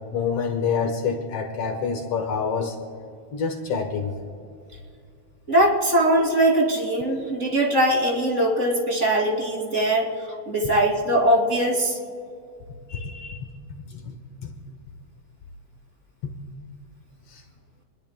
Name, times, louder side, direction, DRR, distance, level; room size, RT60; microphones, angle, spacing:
voice 1, 0.1-2.8 3.3-4.1 12.9-13.4 13.9-14.1 14.4-14.5 17.3-17.4, left 6 dB, 80° left, 4 dB, 1.4 m, -27 dB
voice 2, 5.5-10.1 10.5-12.0, right 1 dB, 25° right, -1 dB, 2.2 m, -21 dB
27.5 x 21.5 x 2.2 m, 2.3 s
omnidirectional pair, 4.4 m